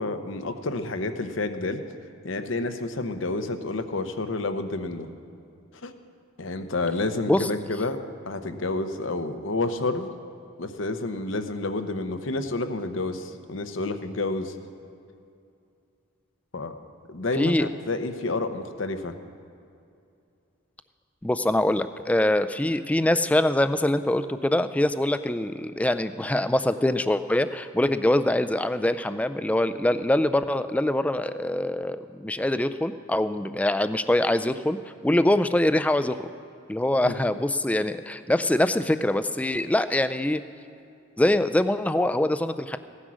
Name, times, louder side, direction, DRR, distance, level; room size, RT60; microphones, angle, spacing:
voice 1, 0.0-1.8 2.2-5.1 5.8-5.9 6.4-8.0 8.2-10.1 10.6-14.5 16.5-16.7 17.1-19.1 37.0-37.2, left 2 dB, 65° left, 8 dB, 0.8 m, -29 dB
voice 2, 17.4-17.7 21.2-34.8 35.0-36.3 36.7-40.4 41.2-42.8, left 1 dB, 5° left, 12 dB, 0.3 m, -24 dB
16.5 x 9.9 x 6.2 m, 2.6 s
head